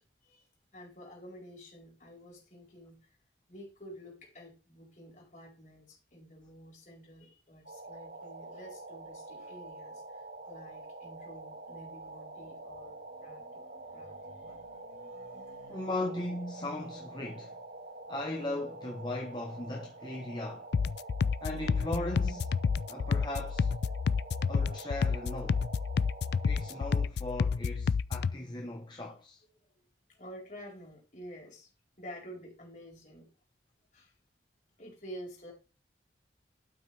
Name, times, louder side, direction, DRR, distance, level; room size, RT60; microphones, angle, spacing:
voice 1, 0.2-3.2 3.5-15.9 29.6-29.7 30.1-31.7 32.0-33.3 33.9-34.1 34.8-35.5, equal, 45° left, 4.2 m, -50 dB
sound 1, 7.7-27.0, right 2 dB, 55° right, 1.1 m, -47 dB
voice 2, 15.7-17.5 18.1-20.7 21.4-22.5 22.9-23.7 24.5-25.6 26.4-29.4, left 1 dB, 25° left, 1.0 m, -38 dB
sound 2, 20.7-28.3, left 5 dB, 65° left, 0.3 m, -30 dB
12.0 x 6.2 x 3.4 m
head